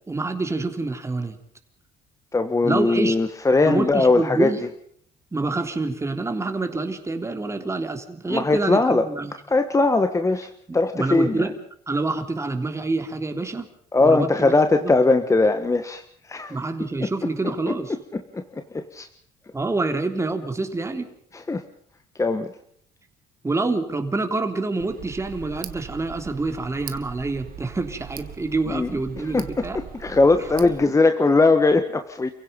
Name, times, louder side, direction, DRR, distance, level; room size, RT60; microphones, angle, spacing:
voice 1, 0.1-1.4 2.6-3.2 3.6-4.6 5.3-9.3 10.7-11.5 11.9-13.7 14.0-14.5 14.8-14.9 16.5-18.0 19.5-21.1 23.4-29.8, right 3 dB, 15° right, 6 dB, 3.5 m, -27 dB
voice 2, 2.3-4.5 8.3-9.1 9.5-11.5 13.9-16.0 16.3-16.6 17.0-17.1 18.1-19.1 21.3-21.6 22.2-22.5 28.7-28.9 29.3-29.7 30.0-32.3, left 3 dB, 20° left, 8 dB, 1.5 m, -20 dB
Tick, 24.8-30.8, right 10 dB, 60° right, 1.9 m, -40 dB
29.5 x 16.5 x 5.4 m, 0.65 s
cardioid pair, 110°, 17 cm